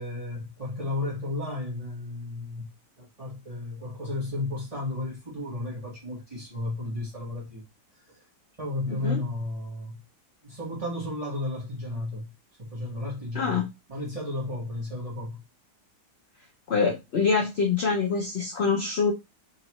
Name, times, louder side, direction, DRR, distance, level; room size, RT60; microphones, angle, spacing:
voice 1, 0.0-2.7 3.0-7.6 8.1-8.2 8.6-10.0 10.4-12.3 12.6-15.4, left 2 dB, 20° right, 1.5 m, -33 dB
voice 2, 8.9-9.2 13.3-13.6 16.7-19.1, left 5 dB, 60° left, 0.6 m, -25 dB
3.9 x 3.1 x 3.0 m
omnidirectional pair, 2.0 m